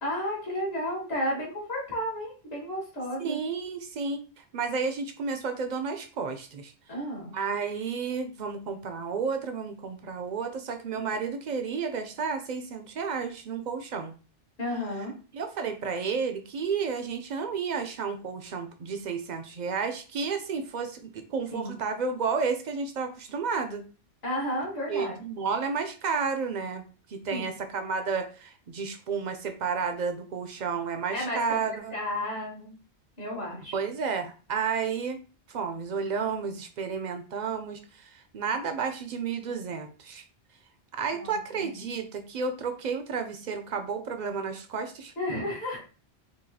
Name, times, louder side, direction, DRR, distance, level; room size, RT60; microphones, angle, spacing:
voice 1, 0.0-3.4 6.9-7.4 14.6-15.1 21.5-21.8 24.2-25.2 27.3-27.5 31.1-31.6 31.9-32.8 33.2-33.8 41.2-41.7 45.2-45.8, equal, 65° left, -3 dB, 1.9 m, -32 dB
voice 2, 3.2-6.7 7.3-14.1 15.3-23.8 24.9-26.8 27.1-32.0 33.7-35.2 35.5-40.2 40.9-45.1, right 5 dB, 55° right, 7 dB, 0.5 m, -31 dB
4.6 x 2.4 x 2.7 m, 0.36 s
omnidirectional pair, 1.1 m